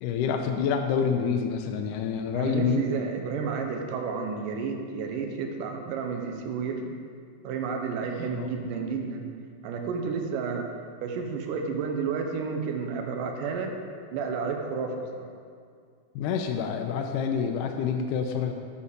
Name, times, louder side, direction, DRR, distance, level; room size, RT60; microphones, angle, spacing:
voice 1, 0.0-2.8 8.3-8.6 16.2-18.5, left 6 dB, 80° left, 4 dB, 2.2 m, -27 dB
voice 2, 2.3-6.9 7.4-9.2 9.6-10.7 11.0-13.8 14.1-15.2, right 5 dB, 90° right, 3 dB, 2.4 m, -31 dB
11.5 x 5.5 x 6.7 m, 2.1 s
omnidirectional pair, 3.7 m